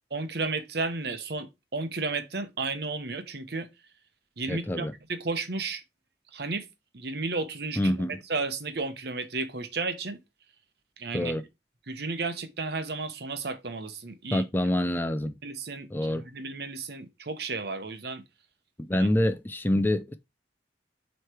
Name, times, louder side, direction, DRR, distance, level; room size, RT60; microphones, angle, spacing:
voice 1, 0.1-3.7 4.4-5.8 6.3-6.7 6.9-7.9 8.3-10.2 11.0-11.3 11.9-14.4 15.4-18.2 18.9-19.1, right 3 dB, 60° right, 1.0 m, -33 dB
voice 2, 4.5-4.9 7.8-8.2 11.1-11.4 14.3-15.4 15.9-16.2 18.9-20.2, left 1 dB, 10° left, 0.4 m, -26 dB
8.0 x 3.2 x 4.4 m
head